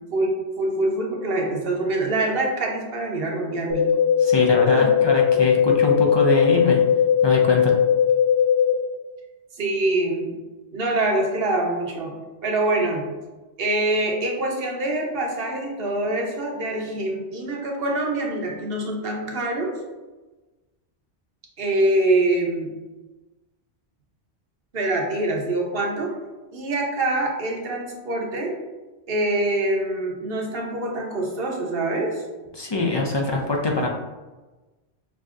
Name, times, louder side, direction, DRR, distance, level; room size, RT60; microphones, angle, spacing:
voice 1, 0.0-3.9 4.7-4.9 9.6-10.3 10.7-12.1 12.4-13.1 13.6-19.7 21.6-22.7 24.7-26.1 26.5-28.5 29.1-32.2, right 2 dB, 60° right, 0 dB, 1.0 m, -24 dB
sound 1, 3.7-8.7, left 8 dB, 30° right, 0.5 m, -18 dB
voice 2, 4.2-6.8 7.2-7.7 32.5-33.9, left 2 dB, 40° left, 0 dB, 0.3 m, -23 dB
6.0 x 2.6 x 2.4 m, 1.2 s
omnidirectional pair, 1.1 m